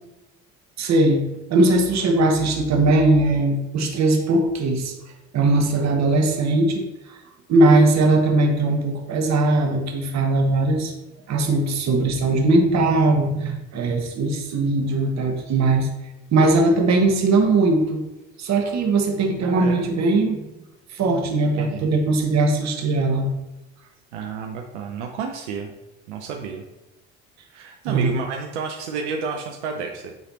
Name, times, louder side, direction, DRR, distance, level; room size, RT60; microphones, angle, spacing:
voice 1, 0.8-4.9 5.3-7.2 7.5-10.9 11.3-15.9 16.3-18.0 18.4-20.4 20.9-23.3 27.8-28.1, right 2 dB, 50° right, 3 dB, 1.4 m, -20 dB
voice 2, 19.4-19.9 21.6-22.0 24.1-25.7 26.1-26.6 27.5-30.1, right 5 dB, 90° right, 2 dB, 0.7 m, -30 dB
8.8 x 3.3 x 4.1 m, 0.96 s
hypercardioid pair, 70°, 34 cm